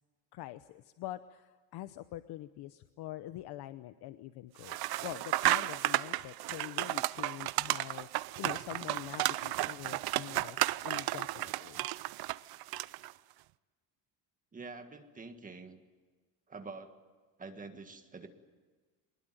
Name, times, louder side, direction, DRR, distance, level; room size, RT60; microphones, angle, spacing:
voice 1, 0.3-8.1 8.4-10.6 10.8-11.8, left 14 dB, 65° left, 12 dB, 0.9 m, -45 dB
sound 1, 4.6-13.1, right 17 dB, 60° right, 0.7 m, -33 dB
voice 2, 14.5-15.8 16.5-16.9 17.4-18.3, right 4 dB, 20° right, 7 dB, 1.7 m, -46 dB
24.0 x 20.5 x 9.1 m, 1.4 s
cardioid pair, 170°, 43 cm